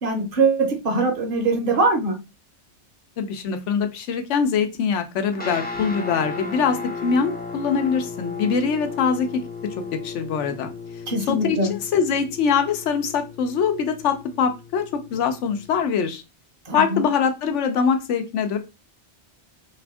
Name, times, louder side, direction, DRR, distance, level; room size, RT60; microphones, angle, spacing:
voice 1, 0.0-2.2 11.1-11.8 16.7-17.1, right 3 dB, 55° right, 0.8 m, -22 dB
voice 2, 3.2-9.3 9.9-10.7 11.3-16.2 16.7-18.6, left 6 dB, 90° left, 1.0 m, -23 dB
sound 1, 5.3-15.8, left 4 dB, 15° left, 0.3 m, -35 dB
2.7 x 2.5 x 3.3 m
omnidirectional pair, 1.2 m